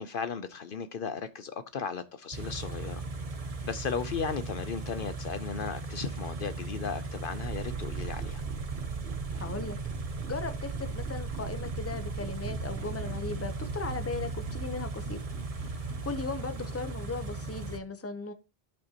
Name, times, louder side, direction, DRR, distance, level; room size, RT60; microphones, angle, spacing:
voice 1, 0.0-3.0 3.4-8.4, left 6 dB, 60° left, 0.8 m, -36 dB
Car / Idling, 2.3-17.8, right 3 dB, 40° right, 0.9 m, -38 dB
sound 1, 7.4-16.2, right 6 dB, 70° right, 1.1 m, -39 dB
voice 2, 9.4-9.8 10.0-15.2 15.5-18.3, left 3 dB, 15° left, 0.8 m, -37 dB
15.0 x 5.4 x 2.9 m
omnidirectional pair, 1.0 m